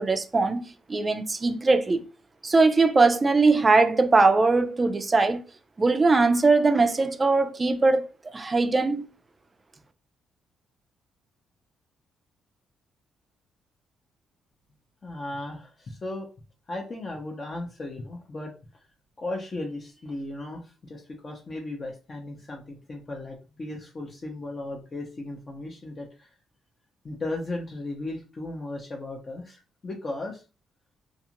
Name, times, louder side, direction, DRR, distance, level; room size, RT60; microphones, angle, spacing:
voice 1, 0.0-2.0 2.4-5.4 5.8-9.1, right 3 dB, 25° right, 0.4 m, -21 dB
voice 2, 15.0-16.3 16.7-18.5 19.2-26.3 27.0-30.4, left 2 dB, 35° left, 0.6 m, -36 dB
2.5 x 2.4 x 2.8 m
cardioid pair, 90°, 0 cm